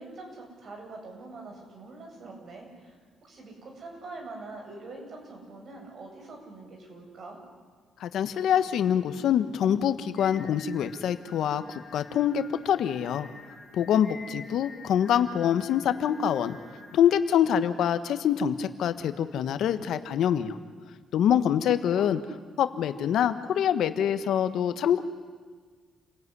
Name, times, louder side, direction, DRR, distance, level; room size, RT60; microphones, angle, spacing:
voice 1, 0.0-3.0 3.2-7.4 21.3-22.1, right 3 dB, 55° right, 2 dB, 7.9 m, -44 dB
voice 2, 8.0-13.3 13.7-16.6 16.9-20.6 21.1-22.2 22.6-25.0, left 9 dB, 75° left, 10 dB, 1.4 m, -25 dB
Singing, 10.2-17.2, left 3 dB, 30° left, 3.1 m, -48 dB
29.0 x 17.0 x 9.9 m, 1.5 s
cardioid pair, 90°, 0 cm